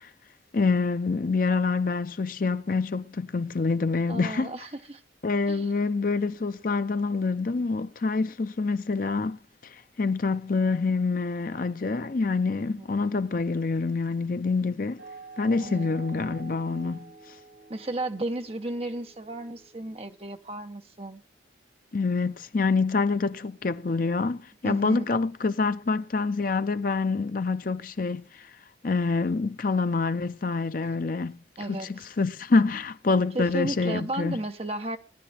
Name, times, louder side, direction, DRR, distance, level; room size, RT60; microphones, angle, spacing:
voice 1, 0.5-4.5 5.2-9.4 10.0-15.0 15.4-17.1 21.9-28.3 28.8-31.4 31.7-34.4, left 4 dB, 45° left, 0.5 m, -26 dB
voice 2, 4.1-5.0 5.5-5.7 12.8-12.9 15.6-15.9 17.7-21.2 24.6-25.1 31.6-32.1 33.3-35.0, right 2 dB, 30° right, 0.9 m, -34 dB
sound 1, 15.0-20.4, right 4 dB, 85° right, 7.9 m, -48 dB
17.5 x 10.0 x 3.4 m
head